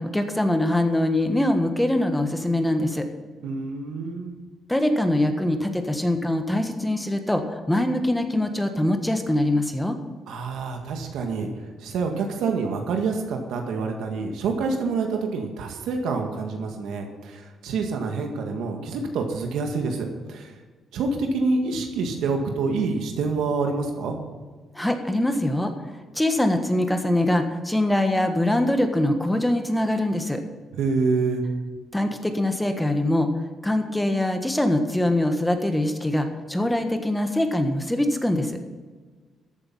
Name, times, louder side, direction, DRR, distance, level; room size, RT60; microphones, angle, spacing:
voice 1, 0.0-3.1 4.7-10.0 24.7-30.4 31.9-33.3 33.6-38.5, left 1 dB, 5° left, 6 dB, 1.5 m, -23 dB
voice 2, 3.4-4.3 10.3-11.5 11.8-20.5 20.9-24.2 30.7-31.4, right 4 dB, 80° right, 3 dB, 1.9 m, -27 dB
14.0 x 8.4 x 5.6 m, 1.4 s
cardioid pair, 90°, 0 cm